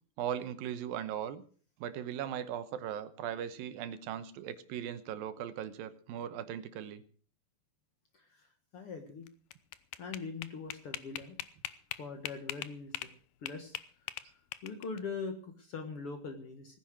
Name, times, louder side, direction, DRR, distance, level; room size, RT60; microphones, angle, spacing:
voice 1, 0.2-1.4 1.8-7.0, right 9 dB, 80° right, 12 dB, 2.8 m, -38 dB
voice 2, 8.7-9.3 10.0-11.4 12.0-13.1 13.4-13.8 14.6-16.8, left 4 dB, 50° left, 6 dB, 1.9 m, -42 dB
sound 1, 9.3-13.1 13.5-15.0, left 13 dB, 75° left, 2.4 m, -41 dB
18.0 x 10.0 x 6.2 m, 0.44 s
omnidirectional pair, 4.2 m